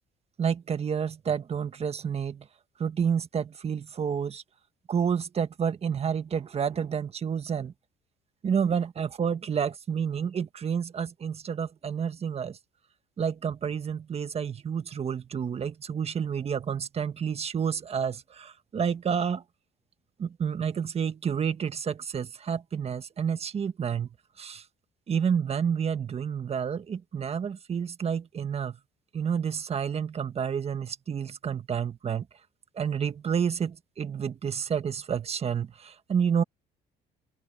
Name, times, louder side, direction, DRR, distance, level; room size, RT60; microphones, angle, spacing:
voice 1, 0.4-2.5 2.8-4.4 4.9-7.7 8.4-12.6 13.2-19.4 20.2-24.1 24.4-24.6 25.1-28.8 29.1-32.3 32.7-36.4, right 7 dB, 35° right, 1.5 m, -29 dB
open air
cardioid pair, 110°, 17 cm